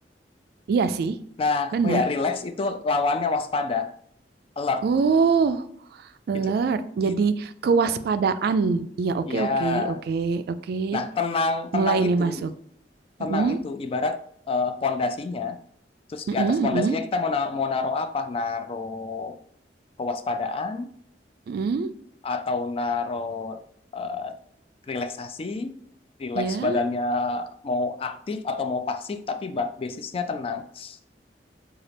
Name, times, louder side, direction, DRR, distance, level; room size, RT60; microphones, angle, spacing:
voice 1, 0.7-1.2 1.7-2.0 4.8-5.6 6.3-11.0 11.7-12.5 13.2-13.6 16.3-17.0 21.5-21.9 26.3-26.8, right 5 dB, 60° right, 12 dB, 0.3 m, -24 dB
voice 2, 1.4-3.9 4.6-4.9 6.3-6.6 7.0-7.2 7.8-7.9 9.3-10.0 10.9-12.5 13.2-14.2 14.5-15.6 16.1-19.4 20.0-20.9 22.2-23.6 23.9-24.4 24.9-25.8 26.2-31.0, left 3 dB, 35° left, 9 dB, 0.3 m, -28 dB
5.1 x 2.4 x 3.3 m, 0.68 s
head